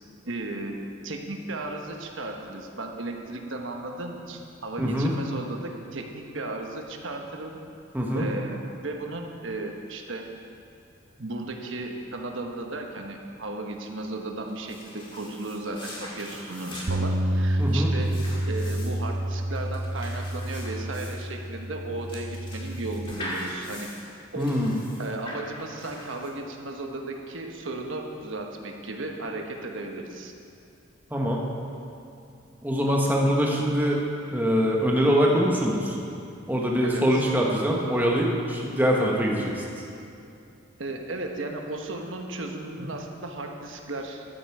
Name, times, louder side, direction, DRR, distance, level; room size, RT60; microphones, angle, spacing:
voice 1, 0.2-0.8 1.0-7.6 8.1-10.3 11.2-18.2 18.5-23.9 24.3-24.5 25.0-30.3 36.8-37.2 40.8-44.3, right 2 dB, 70° right, 3 dB, 1.1 m, -35 dB
voice 2, 4.8-5.1 7.9-8.2 17.6-17.9 24.4-24.7 31.1-31.4 32.6-34.0 34.3-35.9 36.5-39.6, equal, 10° right, -2 dB, 1.3 m, -23 dB
sound 1, 14.5-26.6, left 1 dB, 25° left, 2.0 m, -42 dB
Bass guitar, 16.9-23.1, right 1 dB, 45° right, 0.5 m, -29 dB
13.0 x 9.1 x 4.7 m, 2.6 s
head